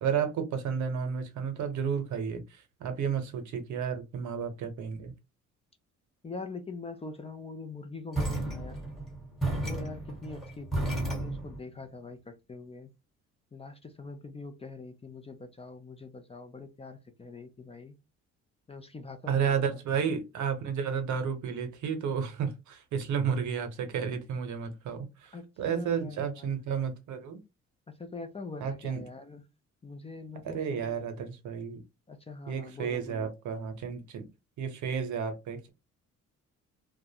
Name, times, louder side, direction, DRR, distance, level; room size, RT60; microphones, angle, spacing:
voice 1, 0.0-5.1 19.3-27.4 28.6-29.0 30.4-31.8 32.5-34.3 34.6-35.7, right 7 dB, 75° right, 0.8 m, -32 dB
voice 2, 6.2-8.8 9.6-12.9 13.5-17.9 18.7-20.0 25.3-26.6 27.9-29.4 29.8-31.0 32.1-33.3, left 3 dB, 20° left, 0.4 m, -43 dB
sound 1, 8.1-11.6, right 2 dB, ahead, 1.1 m, -33 dB
2.4 x 2.1 x 2.7 m
cardioid pair, 90°, 30 cm